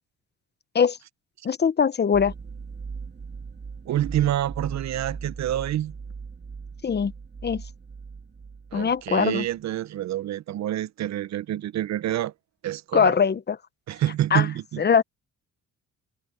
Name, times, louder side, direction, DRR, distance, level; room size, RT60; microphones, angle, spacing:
voice 1, 1.4-2.3 6.8-7.1 7.4-7.6 8.7-9.4 12.9-13.6 14.3-14.5 14.8-15.0, left 6 dB, 35° left, 0.9 m, -21 dB
sound 1, 2.1-9.2, right 5 dB, 35° right, 2.2 m, -39 dB
voice 2, 3.9-5.9 8.7-12.3 12.6-13.1 13.9-14.8, right 12 dB, 65° right, 0.7 m, -27 dB
cardioid pair, 90°, 30 cm